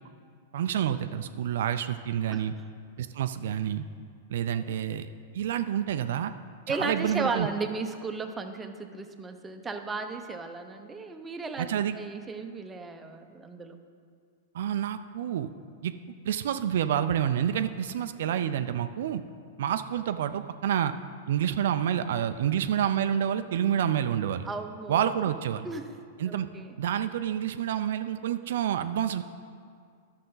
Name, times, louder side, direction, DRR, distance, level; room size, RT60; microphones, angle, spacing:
voice 1, 0.5-2.5 3.0-3.8 4.3-5.1 5.3-6.3 6.7-7.5 11.6-12.0 14.5-15.5 15.8-15.9 16.2-19.2 19.6-20.9 21.3-24.5 24.9-25.7 26.2-26.5 26.8-29.2, right 10 dB, 70° right, 9 dB, 0.4 m, -28 dB
voice 2, 6.7-13.8 24.5-25.2 25.6-25.9 26.2-26.7, right 3 dB, 15° right, 5 dB, 0.7 m, -35 dB
11.0 x 6.6 x 3.9 m, 2.2 s
hypercardioid pair, 115°, 0 cm